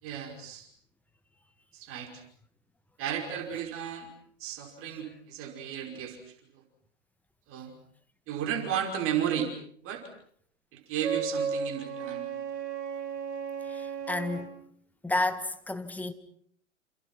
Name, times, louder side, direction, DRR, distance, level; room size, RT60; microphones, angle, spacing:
voice 1, 0.0-0.7 1.7-2.2 3.0-4.1 4.4-6.3 7.5-7.7 8.3-9.5 9.8-10.0 10.7-12.3, right 9 dB, 35° right, 5.3 m, -33 dB
Wind instrument woodwind instrument, 11.0-14.5, right 6 dB, 60° right, 5.1 m, -34 dB
voice 2, 13.7-14.5 15.0-16.1, left 2 dB, 5° left, 1.8 m, -31 dB
28.5 x 28.0 x 6.0 m
hypercardioid pair, 110°, 38 cm